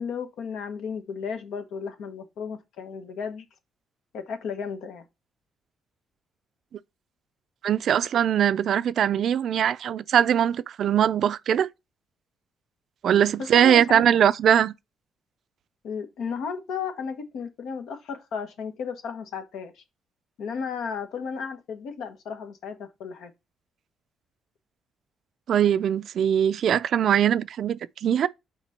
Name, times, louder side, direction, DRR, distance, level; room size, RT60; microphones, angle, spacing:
voice 1, 0.0-3.4 4.1-5.0 13.4-14.1 15.8-19.8 20.4-23.3, left 6 dB, 80° left, 1.3 m, -34 dB
voice 2, 7.6-11.7 13.0-14.7 25.5-28.3, right 9 dB, 65° right, 0.4 m, -21 dB
6.1 x 4.0 x 4.3 m
cardioid pair, 90°, 0 cm